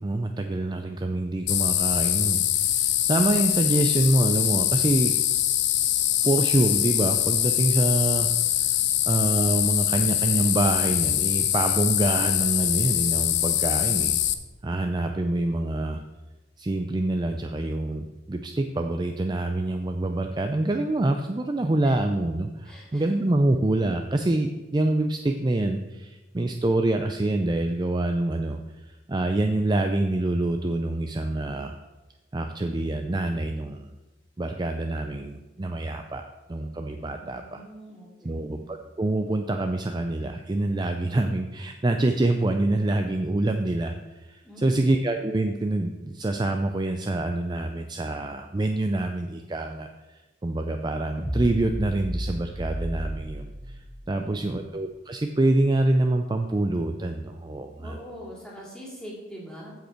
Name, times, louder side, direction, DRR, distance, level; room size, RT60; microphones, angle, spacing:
voice 1, 0.0-5.1 6.2-8.8 9.1-14.2 14.6-16.0 16.6-31.8 32.3-33.9 34.4-36.2 36.5-37.6 38.2-53.8 54.1-58.0, right 2 dB, 25° right, 5 dB, 0.4 m, -26 dB
sound 1, 1.5-14.3, left 12 dB, 75° left, 0.6 m, -24 dB
voice 2, 22.6-23.1 37.1-38.7 44.4-44.9 57.8-59.7, equal, 5° left, -5 dB, 2.7 m, -43 dB
sound 2, 51.2-54.6, equal, 40° right, 2.1 m, -33 dB
15.0 x 5.3 x 4.4 m, 1.1 s
head